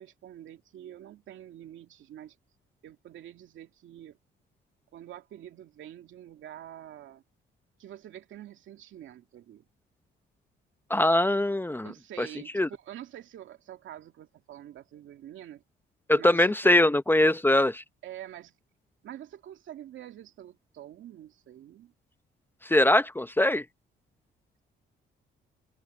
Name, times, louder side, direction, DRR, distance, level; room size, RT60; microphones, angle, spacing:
voice 1, 0.0-2.4 2.8-4.2 4.9-7.2 7.8-9.7 11.8-15.6 16.2-16.9 18.0-18.5 19.0-21.9, right 11 dB, 75° right, 2.4 m, -46 dB
voice 2, 10.9-11.9 12.2-12.3 12.5-12.7 16.1-17.8 22.6-23.6, left 1 dB, 10° left, 0.8 m, -22 dB
cardioid pair, 90°, 20 cm